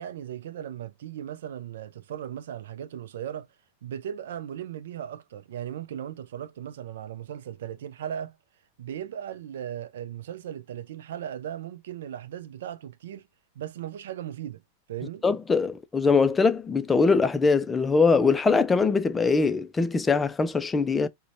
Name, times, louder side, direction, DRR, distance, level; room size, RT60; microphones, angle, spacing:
voice 1, 0.0-3.5 3.8-8.4 8.8-13.2 13.6-14.6 14.9-15.2, right 10 dB, 60° right, 0.4 m, -37 dB
voice 2, 15.2-21.1, left 4 dB, 15° left, 0.3 m, -22 dB
4.9 x 2.1 x 2.6 m
figure-of-eight pair, 90°, 0 cm